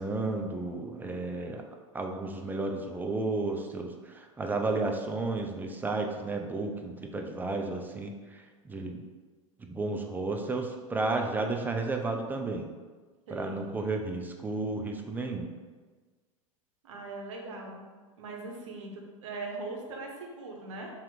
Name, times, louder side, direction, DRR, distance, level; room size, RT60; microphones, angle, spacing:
voice 1, 0.0-1.6 1.9-9.0 9.6-12.7 13.3-15.5, right 3 dB, 10° right, 3 dB, 0.4 m, -32 dB
voice 2, 13.3-13.7 16.8-17.8 18.2-20.9, right 3 dB, 65° right, 0 dB, 0.8 m, -40 dB
3.3 x 2.8 x 3.8 m, 1.4 s
figure-of-eight pair, 90°, 17 cm